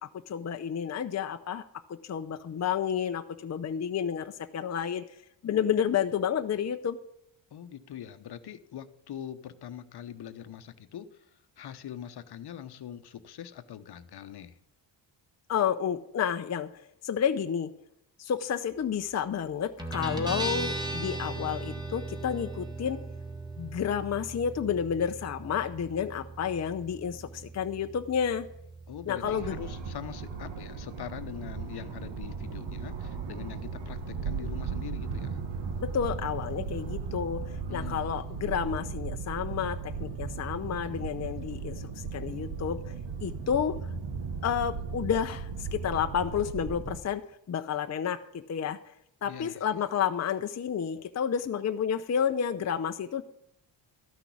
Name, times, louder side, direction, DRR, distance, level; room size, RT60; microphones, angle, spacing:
voice 1, 0.0-1.6 1.9-5.0 5.4-7.0 15.5-17.7 18.2-23.0 23.6-28.5 29.1-29.6 35.8-42.8 43.2-43.8 44.4-48.8 49.2-53.2, left 8 dB, 35° left, 7 dB, 0.6 m, -30 dB
voice 2, 7.5-14.6 28.9-35.4 37.7-38.4 49.2-49.7, left 10 dB, 60° left, 11 dB, 0.9 m, -43 dB
Guitar, 19.8-37.0, right 2 dB, 10° right, 1.7 m, -40 dB
sound 1, 29.2-47.0, right 5 dB, 70° right, 1.5 m, -36 dB
13.0 x 6.0 x 8.4 m, 0.76 s
cardioid pair, 85°, 44 cm